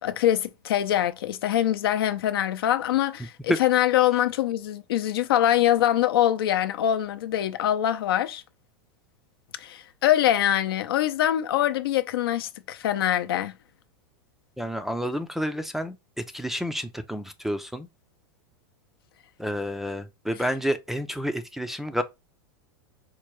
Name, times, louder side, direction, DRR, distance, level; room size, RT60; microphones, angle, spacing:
voice 1, 0.0-8.4 9.6-13.5, left 12 dB, 80° left, 0.5 m, -24 dB
voice 2, 14.6-17.9 19.4-22.0, equal, ahead, 0.3 m, -29 dB
4.6 x 2.2 x 3.1 m
supercardioid pair, 130°, 12 cm